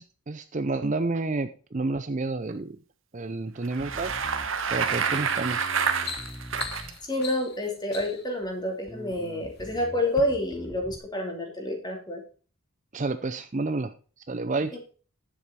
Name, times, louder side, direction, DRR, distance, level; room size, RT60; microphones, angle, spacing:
voice 1, 0.0-2.8 3.1-4.1 4.7-5.7 12.9-13.9 14.3-14.8, right 3 dB, 35° right, 10 dB, 0.5 m, -30 dB
Bicycle, 3.6-6.9, right 6 dB, 60° right, 1.2 m, -28 dB
Bass guitar, 3.8-7.4 8.0-8.5 8.9-11.0, equal, ahead, 0.8 m, -44 dB
sound 1, 5.1-5.3 5.7-8.3 9.1-9.7 10.1-10.2, left 6 dB, 45° left, 1.4 m, -40 dB
voice 2, 7.0-12.2, left 1 dB, 20° left, 2 dB, 2.6 m, -28 dB
10.0 x 7.5 x 4.2 m, 0.38 s
head